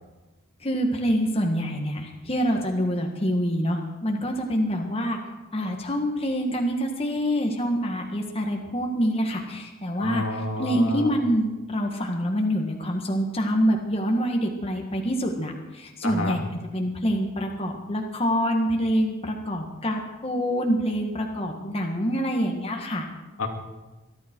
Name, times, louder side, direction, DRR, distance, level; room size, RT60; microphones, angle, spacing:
voice 1, 0.6-5.2 5.5-10.2 10.6-23.1, equal, 25° left, 2 dB, 1.7 m, -26 dB
voice 2, 10.0-11.1 16.0-16.4 23.4-23.5, left 2 dB, 85° left, 2 dB, 2.5 m, -29 dB
22.0 x 12.5 x 4.6 m, 1.1 s
head